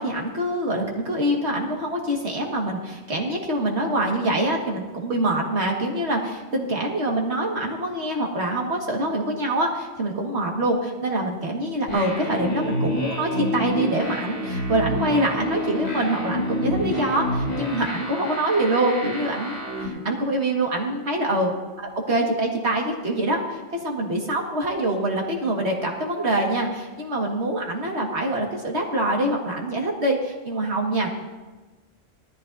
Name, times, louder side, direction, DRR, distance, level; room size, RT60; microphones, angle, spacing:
voice 1, 0.0-21.5 21.8-31.1, right 1 dB, 55° right, 0 dB, 2.1 m, -25 dB
sound 1, 11.9-19.9, left 1 dB, 75° left, 4.8 m, -28 dB
18.0 x 13.5 x 2.7 m, 1.2 s
omnidirectional pair, 1.4 m